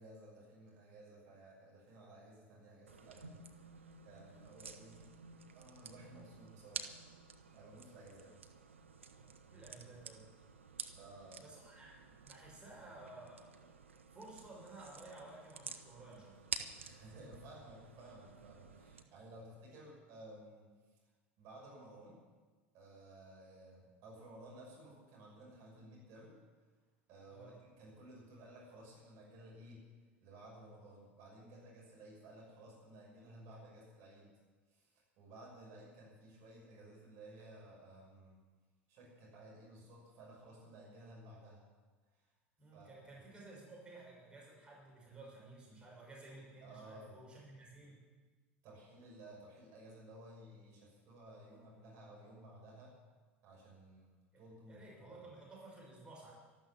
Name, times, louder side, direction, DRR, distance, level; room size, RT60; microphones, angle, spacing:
voice 1, 0.0-3.4 4.0-5.1 5.5-6.9 7.5-8.3 10.9-11.4 16.8-20.7 21.4-22.2 22.7-26.4 27.1-29.8 30.2-34.3 34.7-38.4 38.9-41.6 42.7-43.0 46.6-47.2 48.6-52.9 53.4-54.1 54.4-55.3, right 1 dB, 50° right, -3 dB, 6.3 m, -56 dB
sound 1, 2.9-19.0, right 5 dB, 80° right, 0.9 m, -51 dB
voice 2, 9.5-10.3 11.4-13.7 14.1-16.4 27.3-27.5 42.6-48.0 54.3-56.3, right 2 dB, 15° right, -4 dB, 6.0 m, -54 dB
13.0 x 12.5 x 7.4 m, 1.3 s
figure-of-eight pair, 75°, 7 cm